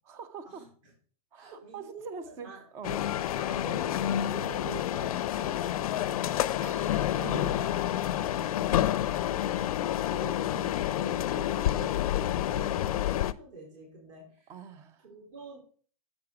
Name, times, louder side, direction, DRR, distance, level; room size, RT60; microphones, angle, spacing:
voice 1, 0.1-0.7 1.3-3.0 7.2-7.7 10.5-10.7 14.5-15.1, right 6 dB, 15° right, 0.4 m, -43 dB
voice 2, 1.4-3.0 3.3-7.3 8.1-9.1 10.0-14.5 15.0-15.6, right 3 dB, 55° right, 4.3 m, -46 dB
sound 1, 2.8-13.3, left 12 dB, 70° left, 0.5 m, -29 dB
sound 2, 6.6-10.9 13.1-13.2, right 7 dB, 70° right, 2.7 m, -51 dB
7.6 x 6.0 x 4.8 m
supercardioid pair, 170°, 19 cm